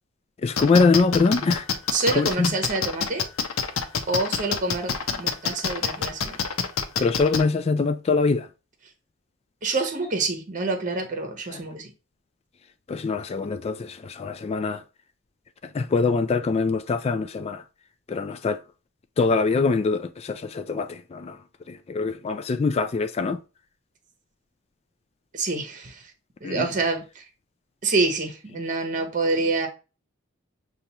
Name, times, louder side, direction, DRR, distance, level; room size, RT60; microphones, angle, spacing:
voice 1, 0.4-1.7 2.1-2.5 7.0-8.5 11.5-11.6 12.9-14.8 15.7-17.6 18.1-18.6 19.2-21.4 21.7-23.4 26.4-26.7, left 4 dB, 30° left, 0.3 m, -23 dB
sound 1, 0.6-7.4, left 6 dB, 85° left, 0.7 m, -26 dB
voice 2, 1.9-3.3 4.1-6.4 9.6-11.9 25.3-26.1 26.4-27.2 27.8-29.7, right 3 dB, 40° right, 0.9 m, -27 dB
6.8 x 2.4 x 2.9 m
head